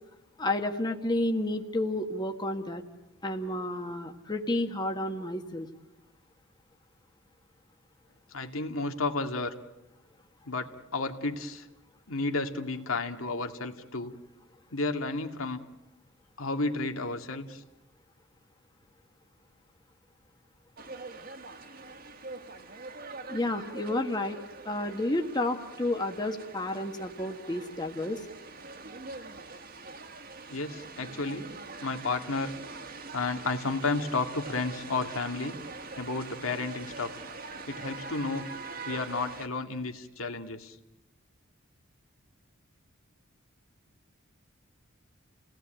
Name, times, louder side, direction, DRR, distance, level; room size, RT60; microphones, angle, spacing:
voice 1, 0.4-2.8 3.2-5.7 23.3-24.4 24.6-28.2, left 1 dB, 20° left, 4 dB, 1.6 m, -31 dB
voice 2, 8.3-9.5 10.5-11.7 12.1-14.1 14.7-15.6 16.4-17.6 30.5-31.5 31.8-32.5 33.1-35.6 36.0-37.1 37.7-38.5 38.8-40.8, left 3 dB, 80° left, 5 dB, 2.3 m, -32 dB
sound 1, 20.8-39.5, right 3 dB, 45° right, 1.8 m, -44 dB
30.0 x 18.5 x 9.2 m, 0.98 s
head